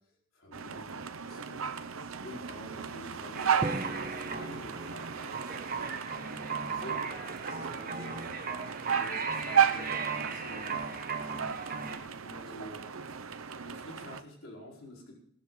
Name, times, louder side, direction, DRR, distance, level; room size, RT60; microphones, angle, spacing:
voice 1, 0.3-1.6 1.9-5.4 6.7-8.5 8.9-10.8 11.2-11.5 11.8-13.1 13.6-15.2, equal, 70° left, -2 dB, 4.7 m, -48 dB
sound 1, 0.5-14.2, right 7 dB, 80° right, 0.9 m, -34 dB
sound 2, 3.3-12.0, right 5 dB, 45° right, 1.8 m, -37 dB
Drum, 3.6-5.8, right 1 dB, 25° right, 0.5 m, -39 dB
19.5 x 13.0 x 3.9 m, 0.69 s
head